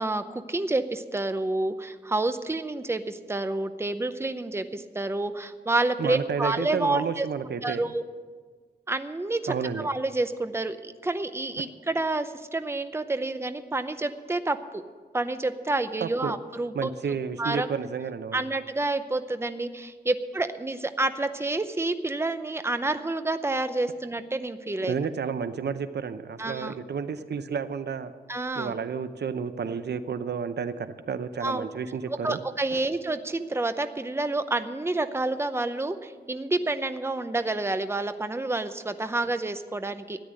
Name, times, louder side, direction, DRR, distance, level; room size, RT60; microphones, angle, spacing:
voice 1, 0.0-7.3 7.6-8.0 8.9-14.8 15.1-16.9 17.4-17.7 18.3-24.9 26.4-26.8 28.3-28.8 31.4-31.7 32.1-40.2, right 2 dB, 15° right, 10 dB, 0.7 m, -29 dB
voice 2, 6.0-7.8 9.5-9.9 16.0-16.3 16.7-18.4 24.9-28.1 28.6-32.4 32.7-32.8, right 6 dB, 90° right, 11 dB, 0.7 m, -31 dB
13.5 x 9.8 x 7.6 m, 1.5 s
wide cardioid pair, 120°, 17 cm